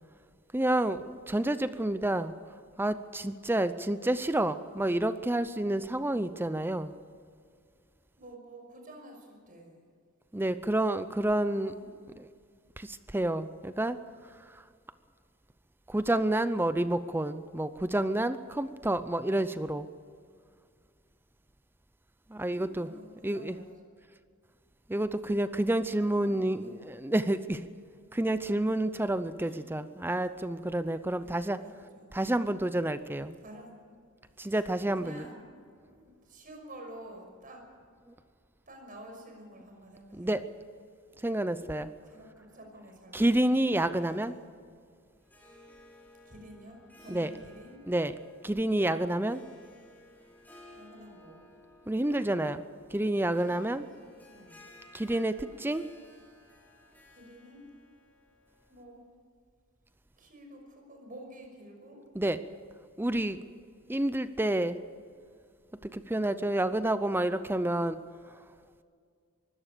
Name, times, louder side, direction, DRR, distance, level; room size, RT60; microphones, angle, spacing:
voice 1, 0.5-2.3 2.8-6.9 10.3-11.7 12.2-12.3 12.8-14.0 14.5-14.6 15.9-19.9 22.3-22.9 23.2-23.6 24.9-27.7 28.1-31.6 32.1-33.4 34.4-35.3 40.1-40.4 41.2-41.9 43.1-44.3 47.1-47.3 47.9-48.1 48.4-49.4 51.9-53.8 54.9-55.8 62.2-62.4 63.0-63.5 63.9-64.8 65.8-68.0, right 1 dB, 10° right, 12 dB, 0.6 m, -29 dB
voice 2, 8.2-9.9 11.5-11.9 22.3-23.7 25.9-26.8 29.4-29.8 31.2-32.6 33.4-33.8 34.4-34.6 35.0-37.6 38.7-40.4 42.1-43.3 43.6-44.5 46.2-47.8 50.7-51.5 53.5-53.8 54.3-54.6 57.1-57.7 58.7-59.0 60.2-62.1, right 1 dB, 45° right, 3 dB, 5.8 m, -50 dB
Harp, 45.2-59.0, left 1 dB, 10° left, 5.4 m, -57 dB
23.5 x 16.5 x 6.8 m, 2.1 s
head